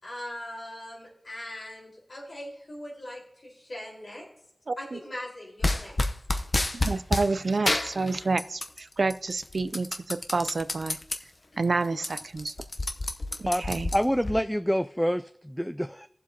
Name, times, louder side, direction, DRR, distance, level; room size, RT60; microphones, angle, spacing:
voice 1, 0.0-4.3 4.8-6.0, left 1 dB, 80° left, -5 dB, 4.2 m, -40 dB
voice 2, 4.7-5.0 6.7-11.0 11.6-12.5 13.4-13.9, right 3 dB, 80° right, 15 dB, 0.4 m, -29 dB
sound 1, 5.6-7.3 7.7-8.8 9.1-11.2 11.6-11.7 11.9-14.4, left 2 dB, 50° left, 0.7 m, -29 dB
voice 3, 13.5-16.1, equal, 5° left, 11 dB, 0.3 m, -27 dB
17.5 x 7.4 x 2.8 m, 0.75 s
wide cardioid pair, 60°, 0 cm